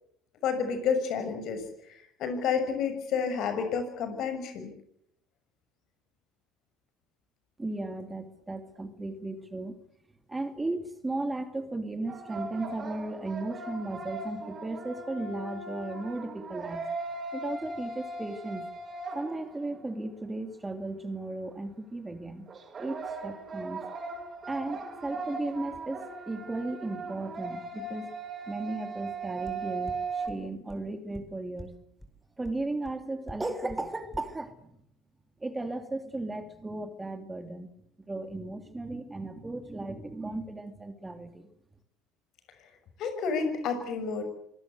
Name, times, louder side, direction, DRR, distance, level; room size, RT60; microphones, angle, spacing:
voice 1, 0.4-1.6 2.2-4.7 43.0-44.2, left 6 dB, 55° left, 8 dB, 6.4 m, -30 dB
voice 2, 7.6-9.8 10.3-16.9 17.3-18.7 19.1-22.5 22.8-23.8 24.5-28.1 28.5-31.7 32.4-34.8 35.4-37.7 38.1-41.5, right 2 dB, 15° right, 8 dB, 2.8 m, -35 dB
sound 1, 12.1-19.9 22.5-30.3, right 3 dB, 35° right, 5.0 m, -38 dB
sound 2, 29.5-29.6 29.9-30.0 30.3-30.4 30.7-30.8 31.1-31.2 31.6-31.7 32.0-32.1 32.4-32.5 32.8-32.9 33.3-33.4 33.7-33.8 34.1-34.2, equal, 5° left, 5.0 m, -42 dB
25.5 x 19.0 x 8.2 m, 0.73 s
hypercardioid pair, 65°, 0 cm